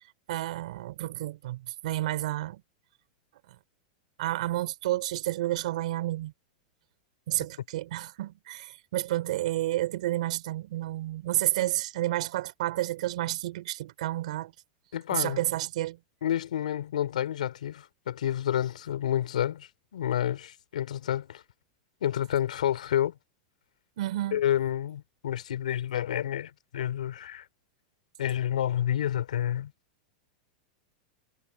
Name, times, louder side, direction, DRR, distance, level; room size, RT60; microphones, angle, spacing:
voice 1, 0.3-2.6 4.2-6.3 7.3-14.5 15.1-16.0 24.0-24.4, right 15 dB, 70° right, 3.5 m, -30 dB
voice 2, 14.9-15.4 16.2-21.4 22.0-23.1 24.3-27.5 28.2-29.7, left 11 dB, 90° left, 2.8 m, -29 dB
supercardioid pair, 130°, 4 cm